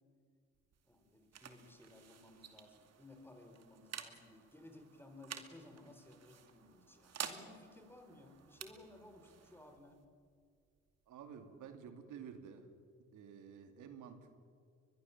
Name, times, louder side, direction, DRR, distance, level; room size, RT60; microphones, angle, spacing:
sound 1, 0.5-11.9, right 8 dB, 55° right, 2.5 m, -52 dB
voice 1, 0.8-10.0, left 2 dB, 5° left, 5 dB, 4.6 m, -58 dB
voice 2, 11.1-12.7 13.1-14.3, right 7 dB, 85° right, 7 dB, 2.6 m, -51 dB
22.5 x 22.0 x 7.3 m, 2.2 s
cardioid pair, 90°, 30 cm